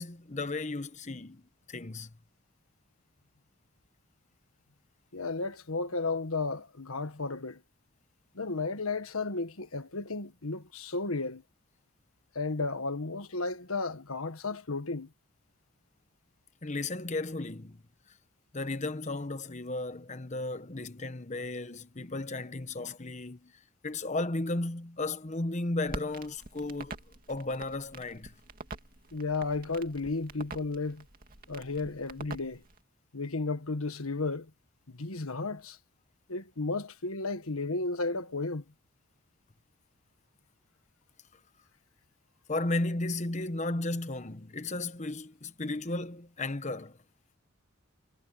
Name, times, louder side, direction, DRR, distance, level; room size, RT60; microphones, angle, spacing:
voice 1, 0.0-1.4 1.7-2.1 16.6-17.8 18.5-23.5 23.8-27.0 27.3-28.3 42.5-47.0, left 2 dB, 35° left, 1.1 m, -34 dB
voice 2, 5.1-7.6 8.3-11.4 12.3-15.1 29.1-31.0 31.5-32.6 33.1-34.5 34.9-35.8 36.3-38.6, left 3 dB, 90° left, 1.6 m, -33 dB
Crackle, 25.9-32.8, right 3 dB, 40° right, 2.5 m, -46 dB
head